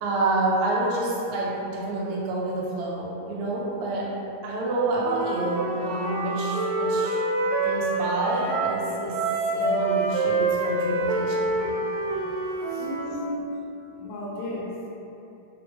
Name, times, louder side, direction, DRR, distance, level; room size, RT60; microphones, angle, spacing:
voice 1, 0.0-4.1 4.4-7.2 7.6-9.2 9.5-11.6, right 2 dB, 70° right, -5 dB, 1.1 m, -28 dB
Wind instrument woodwind instrument, 5.0-8.8 9.1-13.1, right 2 dB, 85° right, 1.4 m, -26 dB
voice 2, 12.7-13.6 13.9-14.8, left 1 dB, 75° left, -4 dB, 1.3 m, -34 dB
3.4 x 2.0 x 3.0 m, 2.9 s
omnidirectional pair, 2.2 m